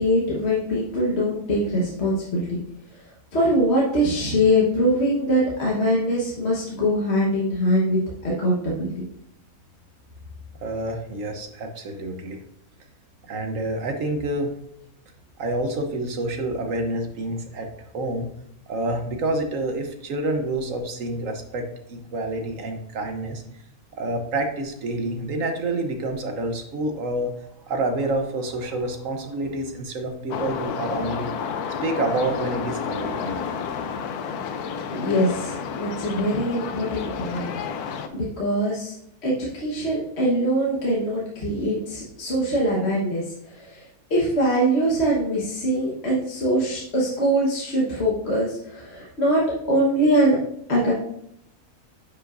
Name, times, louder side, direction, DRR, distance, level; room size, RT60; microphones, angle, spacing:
voice 1, 0.0-2.6 3.3-9.0 34.9-37.5 38.1-38.9 39.2-43.2 43.6-43.8 44.1-49.4 49.7-50.4 50.7-50.9, equal, 45° left, -4 dB, 1.5 m, -23 dB
voice 2, 10.6-12.4 13.3-14.5 15.4-17.7 17.9-18.3 18.7-23.4 24.0-27.3 27.7-34.0, right 2 dB, 65° right, 5 dB, 1.2 m, -28 dB
sound 1, 30.3-38.1, left 6 dB, 85° left, 1.2 m, -30 dB
10.0 x 5.5 x 2.5 m, 0.74 s
omnidirectional pair, 1.6 m